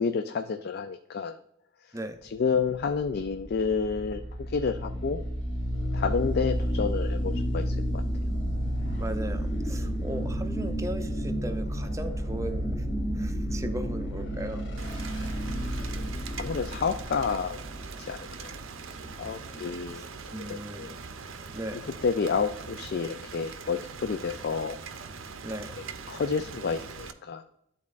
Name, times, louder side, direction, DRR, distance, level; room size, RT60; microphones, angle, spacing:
voice 1, 0.0-1.4 1.8-1.9 2.2-5.2 5.9-8.0 15.7-15.9 16.4-17.6 18.0-18.5 19.2-20.9 21.7-24.8 26.1-27.4, left 5 dB, 50° left, 8 dB, 0.4 m, -30 dB
sound 1, 2.7-19.9, equal, 65° left, 2.4 m, -31 dB
voice 2, 9.0-12.9 13.1-14.7 19.5-19.7 19.9-21.0 21.5-21.9 25.4-25.8, right 1 dB, 15° right, 7 dB, 0.6 m, -37 dB
Rain, 14.8-27.1, right 5 dB, 75° right, 0.6 m, -42 dB
11.5 x 4.1 x 2.5 m, 0.80 s
head